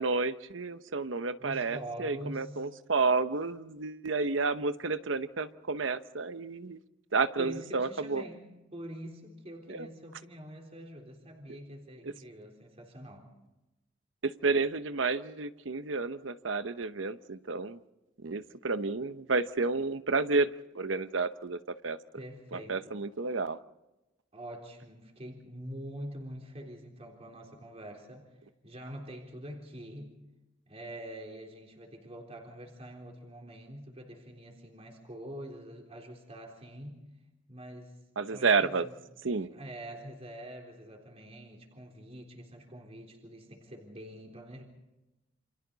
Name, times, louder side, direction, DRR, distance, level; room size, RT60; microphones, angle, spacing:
voice 1, 0.0-6.8 7.1-8.2 9.7-9.9 12.0-12.1 14.2-17.8 18.2-20.5 20.7-22.0 22.5-23.6 38.2-38.8 39.2-39.5, right 4 dB, 85° right, 12 dB, 0.9 m, -30 dB
voice 2, 1.4-2.7 7.4-13.3 22.2-23.0 24.3-28.3 28.6-30.2 30.7-37.0 37.5-38.0 38.3-39.0 39.5-44.6, right 1 dB, 35° right, 0 dB, 3.8 m, -45 dB
29.0 x 27.0 x 4.0 m, 0.99 s
head